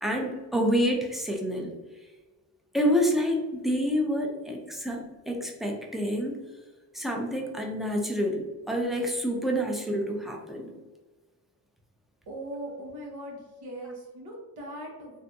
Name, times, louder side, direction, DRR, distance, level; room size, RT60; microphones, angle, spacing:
voice 1, 0.0-1.7 2.7-6.3 6.9-10.7, equal, ahead, 1 dB, 0.4 m, -28 dB
voice 2, 12.3-15.2, right 1 dB, 90° right, -2 dB, 1.0 m, -40 dB
3.4 x 2.6 x 2.6 m, 1.2 s
cardioid pair, 135°, 37 cm